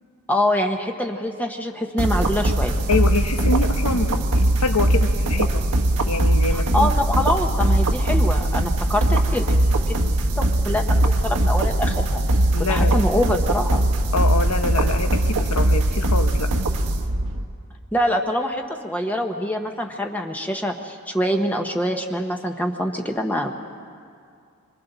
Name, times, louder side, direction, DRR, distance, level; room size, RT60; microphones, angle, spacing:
voice 1, 0.3-2.7 6.5-9.5 9.9-10.0 10.4-12.2 12.6-13.8 17.9-23.5, equal, 5° left, 3 dB, 0.9 m, -25 dB
sound 1, 2.0-17.4, right 1 dB, 85° right, 1.3 m, -20 dB
voice 2, 2.9-5.7 6.1-6.9 12.5-13.0 14.1-16.5, left 3 dB, 80° left, 7 dB, 1.1 m, -25 dB
26.0 x 25.5 x 4.0 m, 2.3 s
head